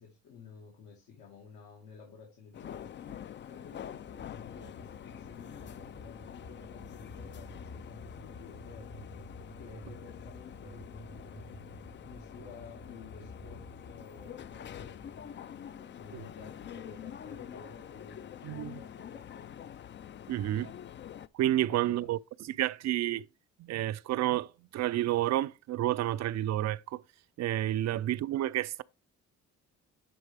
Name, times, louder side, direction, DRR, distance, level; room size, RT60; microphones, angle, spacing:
voice 1, 0.0-3.2 3.5-9.0 9.6-11.7 12.0-19.7 21.7-22.1 27.9-28.1, left 5 dB, 85° left, 2.1 m, -52 dB
sound 1, 2.5-21.3, left 9 dB, 40° left, 0.4 m, -47 dB
sound 2, 3.9-15.3, left 1 dB, 65° left, 3.6 m, -50 dB
voice 2, 18.4-18.8 20.3-20.7 21.3-22.2 22.5-23.3 23.6-27.0 27.4-28.8, right 13 dB, 60° right, 0.5 m, -30 dB
10.0 x 4.1 x 3.4 m
cardioid pair, 90°, 30 cm